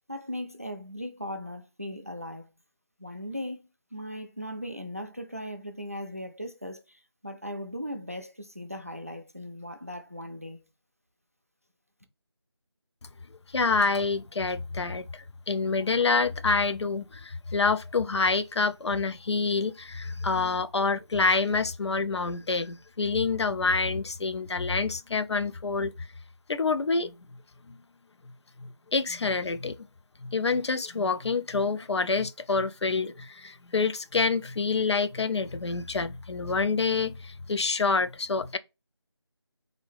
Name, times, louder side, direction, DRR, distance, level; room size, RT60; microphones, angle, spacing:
voice 1, 0.1-2.5 3.0-10.7, equal, 30° right, 0.4 m, -38 dB
voice 2, 13.5-25.9 26.5-27.1 27.7-27.8 28.6-29.8 30.2-38.6, left 4 dB, 70° left, 0.4 m, -27 dB
3.7 x 2.7 x 3.2 m
figure-of-eight pair, 180°, 15 cm